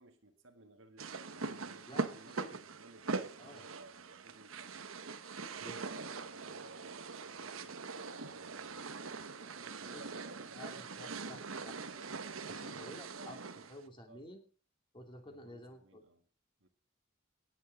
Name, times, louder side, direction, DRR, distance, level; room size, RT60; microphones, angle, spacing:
voice 1, 0.0-4.8 5.5-7.8 8.1-13.6 14.1-14.3 15.3-16.3 16.6-16.7, right 2 dB, 70° right, 5 dB, 1.7 m, -59 dB
sound 1, 1.0-13.8, right 4 dB, 85° right, 1.1 m, -42 dB
voice 2, 1.9-2.6 3.4-3.7 5.6-6.0 9.9-10.0 10.5-11.8 12.5-13.4 13.7-14.5 14.9-16.0, left 1 dB, 25° left, 4 dB, 2.8 m, -51 dB
18.0 x 8.1 x 5.2 m, 0.39 s
head